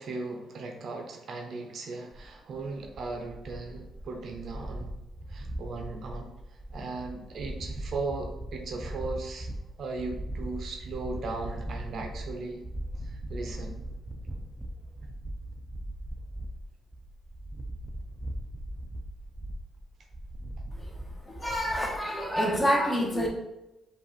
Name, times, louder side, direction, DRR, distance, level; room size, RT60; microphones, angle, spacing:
voice 1, 0.0-5.0 5.3-6.3 6.7-9.5 9.8-12.7 13.0-13.8, right 3 dB, 60° right, 4 dB, 0.7 m, -37 dB
sound 1, 2.1-22.0, right 1 dB, 10° right, 0.6 m, -39 dB
voice 2, 21.3-23.3, equal, 15° left, -1 dB, 1.2 m, -27 dB
5.0 x 2.5 x 4.0 m, 0.95 s
cardioid pair, 90°, 0 cm